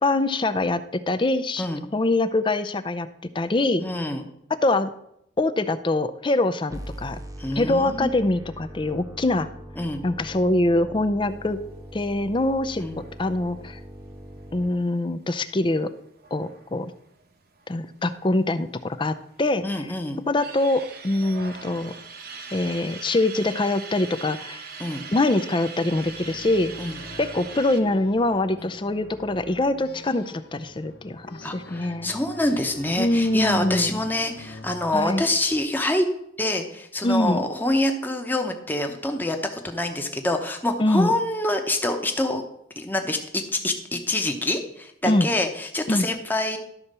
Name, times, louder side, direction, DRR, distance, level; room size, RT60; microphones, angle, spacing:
voice 1, 0.0-1.6 1.9-3.1 3.3-3.9 4.6-4.9 5.4-7.2 7.6-9.5 10.0-11.6 11.9-12.8 13.2-13.8 14.5-15.9 16.3-16.9 17.7-19.6 20.3-21.9 22.5-24.6 25.1-26.7 27.2-31.3 31.5-32.1 33.0-34.0 34.9-35.3 37.0-37.4 40.8-41.1 45.0-45.3 45.9-46.1, left 2 dB, 25° left, 11 dB, 0.5 m, -24 dB
voice 2, 3.8-4.2 7.4-8.1 9.8-10.0 12.8-13.0 19.6-20.2 24.8-25.0 26.8-27.0 28.6-28.7 31.4-36.1 36.4-42.4 42.8-43.2 43.5-46.6, left 1 dB, 10° left, 4 dB, 1.0 m, -26 dB
sound 1, 6.7-14.7, right 1 dB, 20° right, 1.0 m, -41 dB
sound 2, 12.9-18.0 18.3-18.4 18.6-19.6 20.0-27.8, right 5 dB, 55° right, 1.1 m, -41 dB
sound 3, 25.9-35.7, left 2 dB, 55° left, 0.9 m, -44 dB
12.0 x 4.2 x 6.7 m, 0.75 s
head